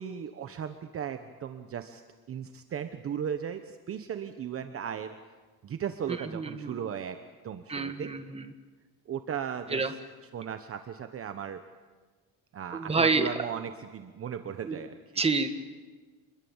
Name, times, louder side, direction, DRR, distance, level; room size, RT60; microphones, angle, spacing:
voice 1, 0.0-2.0 2.3-5.1 5.6-7.2 7.4-8.1 9.1-10.0 10.3-11.6 12.5-15.0, right 8 dB, 35° right, 8 dB, 1.1 m, -36 dB
voice 2, 6.1-6.8 7.7-8.5 9.7-9.9 12.7-13.3 14.6-14.8 15.2-15.5, right 4 dB, 15° right, 7 dB, 1.6 m, -28 dB
27.5 x 21.5 x 7.3 m, 1.4 s
cardioid pair, 145°, 37 cm